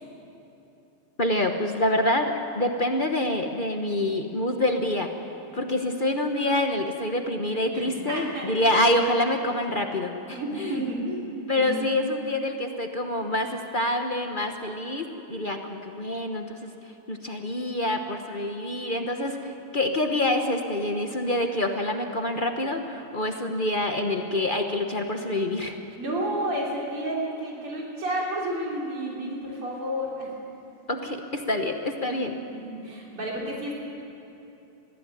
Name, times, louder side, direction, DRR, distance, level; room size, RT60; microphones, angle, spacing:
voice 1, 1.2-5.1 5.5-10.8 11.5-16.7 17.1-25.8 30.9-32.4, left 1 dB, 35° left, 4 dB, 0.8 m, -26 dB
voice 2, 7.7-8.5 10.3-12.0 26.0-30.3 31.0-31.1 32.1-32.2 32.5-33.8, right 1 dB, 80° right, -3 dB, 4.3 m, -31 dB
21.5 x 15.0 x 9.2 m, 2.9 s
omnidirectional pair, 2.4 m